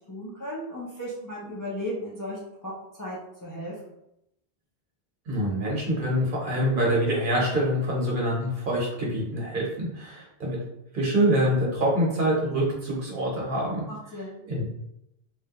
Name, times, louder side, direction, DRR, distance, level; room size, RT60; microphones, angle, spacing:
voice 1, 0.1-2.7 3.0-3.7 13.9-14.4, equal, 25° left, -6 dB, 0.5 m, -35 dB
voice 2, 5.3-10.6 10.9-13.8 14.5-14.7, right 1 dB, 55° right, -3 dB, 1.1 m, -25 dB
3.1 x 2.3 x 2.8 m, 0.82 s
omnidirectional pair, 1.1 m